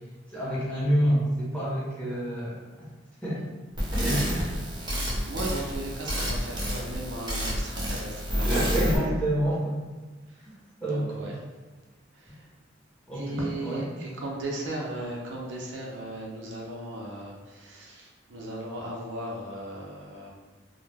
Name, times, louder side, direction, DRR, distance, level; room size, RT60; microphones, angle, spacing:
voice 1, 0.3-2.6 3.2-3.4 3.9-4.4 8.4-9.8 10.8-11.3 13.1-14.0, equal, 5° left, -8 dB, 0.8 m, -27 dB
sound 1, 3.8-9.0, equal, 25° right, 0.7 m, -29 dB
voice 2, 5.3-9.0 10.9-11.3 13.1-20.3, right 1 dB, 70° right, -2 dB, 0.5 m, -36 dB
2.2 x 2.1 x 3.2 m, 1.3 s
head